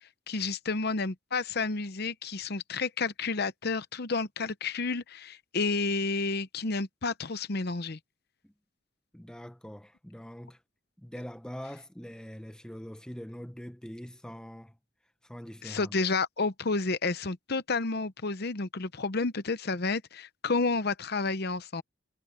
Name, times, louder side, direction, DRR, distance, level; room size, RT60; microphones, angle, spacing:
voice 1, 0.3-8.0 15.6-21.8, left 3 dB, 50° left, 0.8 m, -30 dB
voice 2, 9.1-10.6 11.0-14.8 15.2-15.9, equal, 5° left, 0.6 m, -43 dB
head